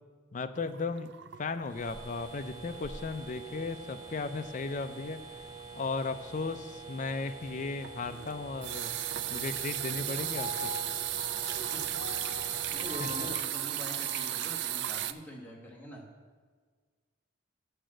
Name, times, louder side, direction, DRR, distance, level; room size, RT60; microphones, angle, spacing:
voice 1, 0.3-1.1 1.4-5.2 5.7-8.9 9.3-10.7 13.0-13.3, left 4 dB, 40° left, 10 dB, 0.4 m, -36 dB
sound 1, 0.5-2.2 2.5-2.8 3.1-3.2 7.8-15.1, right 11 dB, 60° right, 0.3 m, -35 dB
sound 2, 1.6-13.4, right 3 dB, 20° right, 0.7 m, -46 dB
Piano, 10.4-14.5 14.9-15.0, left 2 dB, 60° left, 0.8 m, -43 dB
voice 2, 12.1-16.0, equal, 10° left, -2 dB, 1.3 m, -44 dB
6.7 x 6.2 x 7.6 m, 1.5 s
head